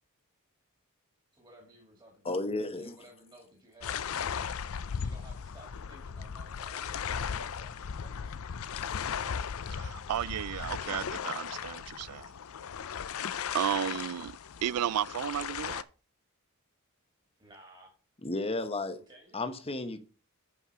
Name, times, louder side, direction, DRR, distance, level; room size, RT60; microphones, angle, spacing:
voice 1, 1.3-2.4 2.7-4.4 5.0-8.4 17.4-17.9 19.1-19.4, right 1 dB, 20° right, 2.4 m, -56 dB
voice 2, 2.2-2.9 18.2-19.0 19.3-20.0, left 2 dB, 25° left, 0.9 m, -33 dB
sound 1, 3.8-15.8, left 7 dB, 65° left, 0.5 m, -37 dB
voice 3, 9.7-12.3 13.5-14.3 14.6-15.8, right 10 dB, 85° right, 0.3 m, -33 dB
8.4 x 5.7 x 5.6 m
head